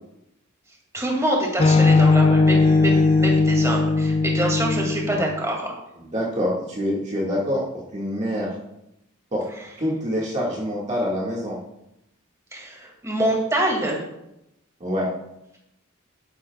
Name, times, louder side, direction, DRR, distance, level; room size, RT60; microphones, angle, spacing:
voice 1, 0.9-5.7 12.5-14.0, right 1 dB, 15° right, -1 dB, 2.3 m, -25 dB
sound 1, 1.6-5.4, left 3 dB, 25° left, 0.3 m, -18 dB
voice 2, 6.1-7.7 7.9-8.5 9.3-9.5 9.8-11.6 14.8-15.1, equal, 35° right, -5 dB, 1.9 m, -25 dB
11.5 x 10.5 x 2.3 m, 0.85 s
head